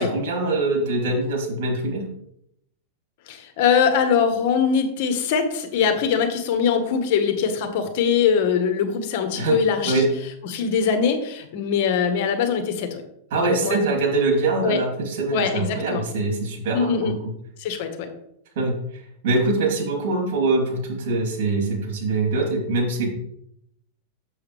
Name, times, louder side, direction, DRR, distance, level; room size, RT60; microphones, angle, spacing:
voice 1, 0.0-2.1 9.4-9.6 9.8-10.0 13.3-17.2 18.5-23.1, right 3 dB, 65° right, 1 dB, 3.1 m, -23 dB
voice 2, 3.3-10.1 10.4-13.0 13.4-13.8 14.6-14.8 15.3-16.0 16.7-17.1 17.6-18.1, left 6 dB, 60° left, 7 dB, 1.4 m, -22 dB
7.2 x 7.1 x 3.3 m, 0.75 s
supercardioid pair, 135°, 0 cm